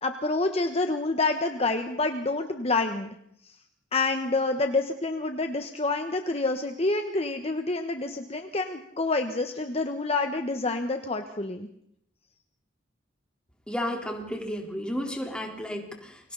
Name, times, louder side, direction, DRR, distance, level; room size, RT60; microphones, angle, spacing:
voice 1, 0.0-3.1 3.4-3.5 3.9-11.7, left 3 dB, 35° left, 6 dB, 1.4 m, -28 dB
voice 2, 13.7-16.3, equal, 5° left, 1 dB, 4.1 m, -33 dB
29.5 x 23.5 x 4.2 m, 0.71 s
head